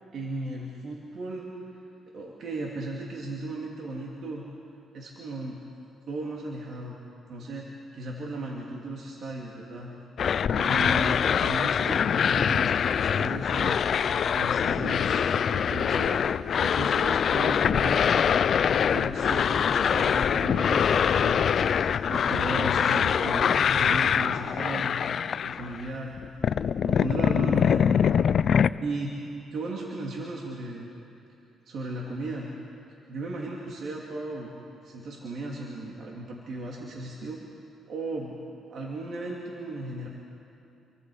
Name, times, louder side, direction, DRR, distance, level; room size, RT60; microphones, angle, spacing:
voice 1, 0.1-1.8 2.1-4.4 4.9-5.6 6.1-7.0 7.3-9.9 10.5-13.9 14.3-16.2 16.6-18.2 18.9-21.8 22.1-25.0 25.4-26.2 26.8-28.2 28.6-29.1 29.5-30.9 31.7-32.5 33.1-37.4 37.9-38.4 38.7-40.1, right 2 dB, 65° right, -2 dB, 2.8 m, -36 dB
sound 1, 10.2-25.9 26.2-28.7, left 7 dB, 55° left, 0.5 m, -24 dB
29.0 x 23.5 x 5.0 m, 2.6 s
cardioid pair, 90°, 0 cm